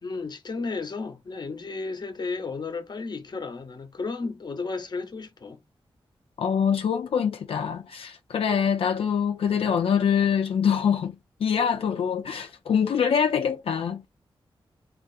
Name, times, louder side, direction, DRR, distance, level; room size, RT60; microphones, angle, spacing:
voice 1, 0.0-5.6, left 4 dB, 50° left, 0.8 m, -33 dB
voice 2, 6.4-11.2 11.4-14.1, left 7 dB, 85° left, 0.4 m, -24 dB
3.4 x 2.4 x 2.6 m
wide cardioid pair, 80°, 9 cm